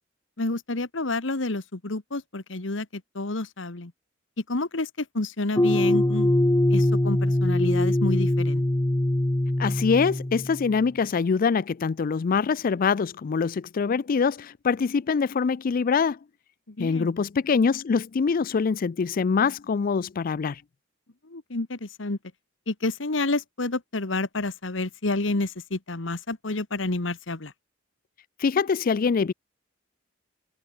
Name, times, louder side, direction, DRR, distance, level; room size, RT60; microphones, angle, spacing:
voice 1, 0.4-3.9 4.4-6.4 6.7-8.6 16.7-17.1 21.2-22.2 22.7-27.5, left 2 dB, 70° left, 1.5 m, -29 dB
sound 1, 5.6-10.8, left 1 dB, 15° left, 0.7 m, -23 dB
voice 2, 9.6-16.2 16.8-20.6 28.4-29.3, left 5 dB, 45° left, 0.4 m, -24 dB
head